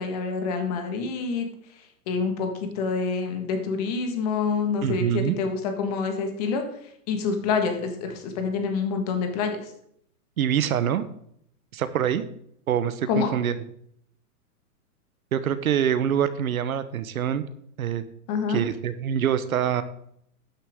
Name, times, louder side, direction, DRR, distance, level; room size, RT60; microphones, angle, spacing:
voice 1, 0.0-1.5 2.1-6.6 7.1-9.6 13.1-13.3 18.3-18.6, left 5 dB, 25° left, 5 dB, 1.6 m, -27 dB
voice 2, 4.8-5.4 10.4-11.0 11.7-12.2 12.7-13.6 15.3-17.4 17.8-18.0 18.5-19.8, right 9 dB, 65° right, 13 dB, 1.1 m, -25 dB
12.5 x 10.0 x 3.7 m, 0.69 s
hypercardioid pair, 175°, 46 cm